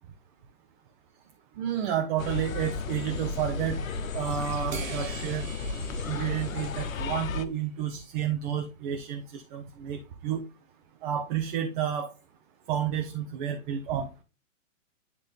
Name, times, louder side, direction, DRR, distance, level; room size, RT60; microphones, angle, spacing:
voice 1, 1.6-3.8 4.1-5.5 6.1-10.4 11.0-12.1 12.7-14.1, right 9 dB, 40° right, 1.3 m, -30 dB
sound 1, 2.2-7.5, left 4 dB, 85° left, 1.0 m, -33 dB
sound 2, 4.7-7.4, right 6 dB, 75° right, 1.5 m, -43 dB
11.0 x 3.7 x 3.6 m
hypercardioid pair, 140°, 40 cm